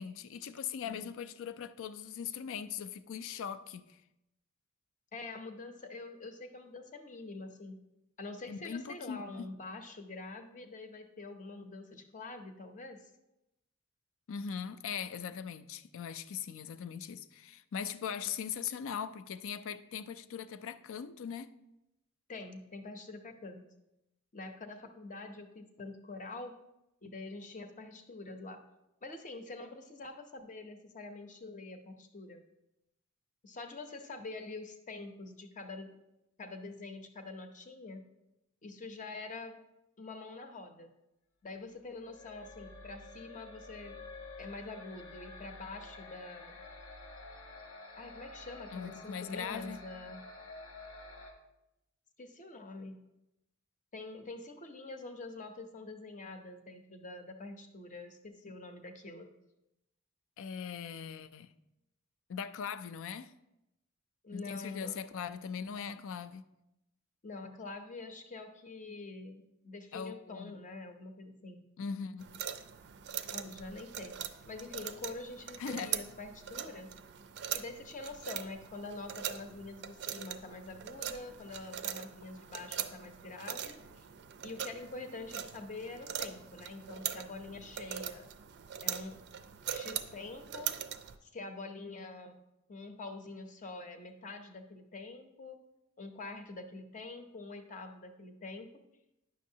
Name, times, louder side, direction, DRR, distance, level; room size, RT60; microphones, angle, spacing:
voice 1, 0.0-4.0 8.5-9.5 14.3-21.5 48.7-49.8 60.4-61.5 62.3-63.3 64.3-66.5 69.9-70.6 71.8-72.4 75.6-76.0, left 7 dB, 65° left, 0.4 m, -40 dB
voice 2, 5.1-7.8 8.2-13.1 22.3-23.6 24.3-26.6 27.0-28.6 29.0-32.4 33.4-36.0 36.4-38.0 38.6-39.6 40.0-40.9 41.4-44.0 44.4-46.6 48.0-50.2 52.2-53.0 53.9-59.3 64.2-65.0 67.2-71.6 73.3-74.1 74.4-76.9 77.5-84.1 84.4-88.3 88.8-89.2 89.7-90.7 91.2-92.3 92.7-95.6 96.0-98.7, left 3 dB, 35° left, 0.7 m, -45 dB
sound 1, 41.8-51.3, left 3 dB, 80° left, 1.2 m, -50 dB
sound 2, 72.2-91.2, right 10 dB, 50° right, 0.4 m, -42 dB
9.4 x 6.3 x 2.8 m
head